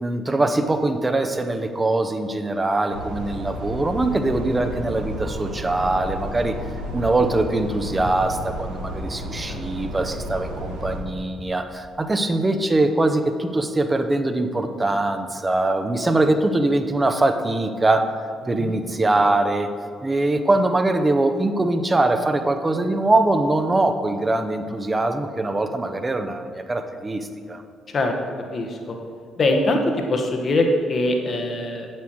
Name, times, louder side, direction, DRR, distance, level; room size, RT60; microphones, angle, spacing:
voice 1, 0.0-6.6 6.9-18.1 18.5-19.7 20.0-27.6, right 2 dB, 25° right, 7 dB, 0.8 m, -22 dB
sound 1, 2.9-11.0, equal, 75° right, 1.3 m, -32 dB
voice 2, 28.5-29.0 29.4-29.8 30.1-31.9, left 2 dB, 45° left, 3 dB, 1.0 m, -22 dB
8.5 x 7.6 x 4.7 m, 2.2 s
figure-of-eight pair, 45°, 0 cm